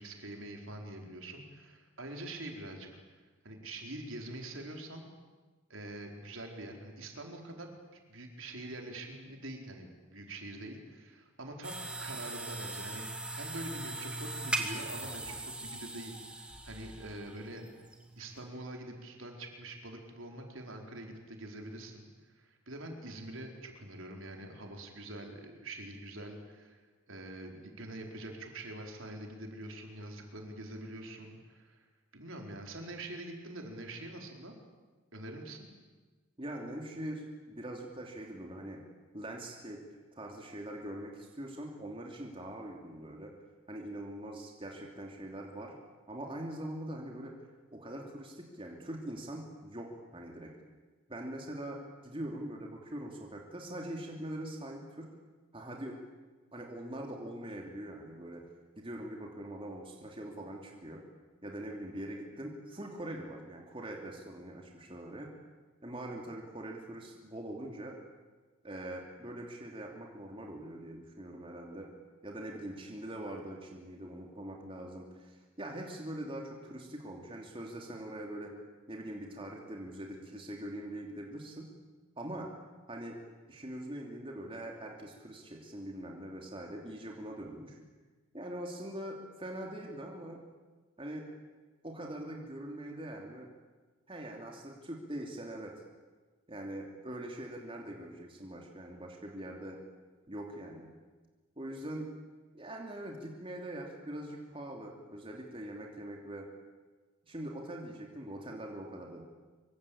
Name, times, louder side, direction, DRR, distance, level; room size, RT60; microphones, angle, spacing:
voice 1, 0.0-2.9 3.4-5.1 5.7-17.7 18.2-22.1 22.3-26.8 27.1-31.9 32.1-34.5 35.1-35.7, right 1 dB, 65° right, 2 dB, 4.6 m, -45 dB
sound 1, 11.6-18.4, right 2 dB, 5° right, 2.7 m, -40 dB
voice 2, 36.4-38.8 39.1-39.8 40.1-43.3 43.7-45.8 46.1-47.3 47.7-50.5 51.1-55.1 55.5-56.0 56.5-58.4 58.8-61.0 61.4-65.3 65.8-68.0 68.6-71.9 72.2-78.5 78.9-81.7 82.2-82.5 82.9-83.2 83.5-87.8 88.3-90.4 91.0-91.3 91.8-93.5 94.1-95.8 96.5-99.8 100.3-100.9 101.6-102.1 102.5-106.5 107.2-109.2, right 1 dB, 25° right, 0 dB, 3.0 m, -43 dB
25.5 x 24.0 x 8.8 m, 1.3 s
head